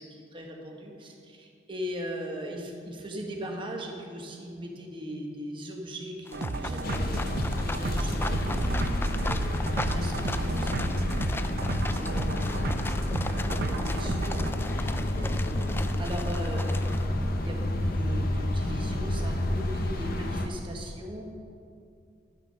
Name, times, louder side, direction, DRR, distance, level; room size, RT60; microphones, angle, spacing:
voice 1, 0.0-7.2 7.5-10.8 11.9-15.7 16.0-16.9 17.4-21.2, equal, 25° right, 0 dB, 1.5 m, -39 dB
sound 1, 6.3-17.1, left 3 dB, 10° left, 0.3 m, -39 dB
sound 2, 6.3-14.5, right 2 dB, 55° right, 0.6 m, -33 dB
sound 3, 6.8-20.5, left 1 dB, 50° left, 0.9 m, -29 dB
11.5 x 9.4 x 5.7 m, 2.4 s
head